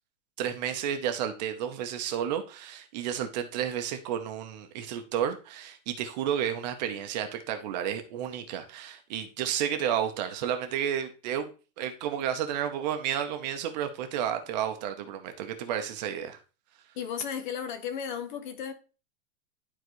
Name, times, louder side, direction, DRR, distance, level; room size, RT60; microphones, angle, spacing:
voice 1, 0.4-11.5 11.8-16.4, right 9 dB, 35° right, 0.8 m, -31 dB
voice 2, 16.9-18.7, left 8 dB, 40° left, 0.8 m, -34 dB
12.0 x 4.0 x 3.1 m
supercardioid pair, 170°, 38 cm